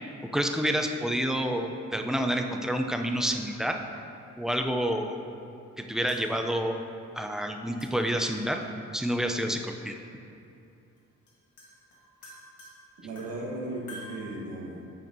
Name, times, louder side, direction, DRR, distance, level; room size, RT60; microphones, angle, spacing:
voice 1, 0.3-3.8 4.4-5.2 5.8-6.8 7.1-8.6 8.9-9.9, equal, ahead, 4 dB, 0.4 m, -28 dB
sound 1, 2.7-2.8 3.2-4.0 6.1-7.0 7.8-8.4 9.8-9.9 11.0-11.1 11.3-14.2, equal, 70° left, 1.4 m, -50 dB
voice 2, 13.0-14.9, right 1 dB, 75° right, -2 dB, 1.4 m, -36 dB
8.5 x 5.2 x 2.6 m, 2.6 s
cardioid pair, 90°, 30 cm